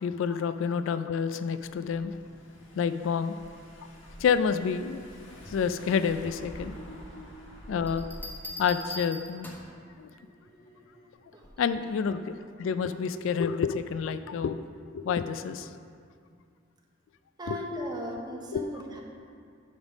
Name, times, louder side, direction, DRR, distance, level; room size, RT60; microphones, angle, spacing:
voice 1, 0.0-2.2 2.7-3.4 4.2-5.0 5.5-6.8 7.7-8.1 8.6-9.5 10.0-10.1 11.6-15.7 17.5-17.6 18.5-18.7, left 6 dB, 70° left, 11 dB, 0.3 m, -29 dB
Car / Engine, 1.8-8.5, equal, 90° left, 1.4 m, -47 dB
sound 1, 6.0-8.9 9.9-11.1, equal, 40° left, 1.5 m, -52 dB
sound 2, 7.9-9.8 11.4-11.8, left 1 dB, 10° left, 0.8 m, -41 dB
voice 2, 17.4-19.0, equal, 20° right, 0 dB, 0.9 m, -37 dB
9.3 x 3.5 x 6.0 m, 2.2 s
head